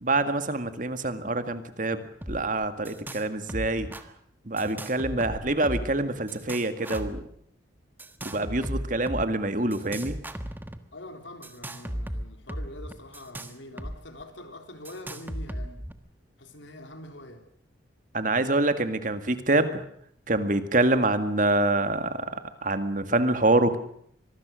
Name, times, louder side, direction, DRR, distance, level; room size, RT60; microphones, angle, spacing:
voice 1, 0.0-3.9 4.5-7.2 8.2-10.2 18.1-19.8 20.3-22.3 22.6-23.8, right 2 dB, 45° right, 9 dB, 2.0 m, -26 dB
sound 1, 2.2-2.4 2.6-3.2 3.5-4.0 4.6-6.0 6.3-7.2 8.0-9.2 9.7-10.8 11.4-13.9 14.2-14.3 14.8-15.9, equal, 10° right, 1.4 m, -36 dB
voice 2, 10.9-15.9 16.4-17.4, left 1 dB, 75° left, 6 dB, 3.6 m, -44 dB
25.0 x 20.0 x 6.4 m, 0.66 s
head